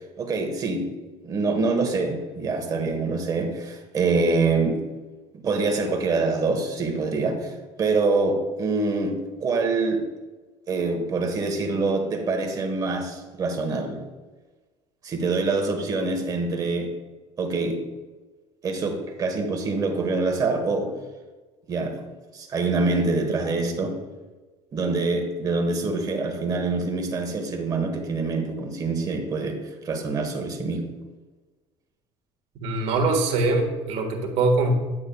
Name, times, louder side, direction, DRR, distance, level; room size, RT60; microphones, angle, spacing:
voice 1, 0.2-0.9 1.2-4.8 5.4-7.5 7.8-10.0 10.7-14.0 15.0-16.9 17.4-17.8 18.6-20.9 21.7-22.0 22.3-24.0 24.7-29.6 29.8-30.9, right 3 dB, 30° right, 4 dB, 1.3 m, -25 dB
voice 2, 32.6-34.7, right 2 dB, 65° right, 2 dB, 1.6 m, -22 dB
10.5 x 8.4 x 2.3 m, 1.3 s
cardioid pair, 150°, 12 cm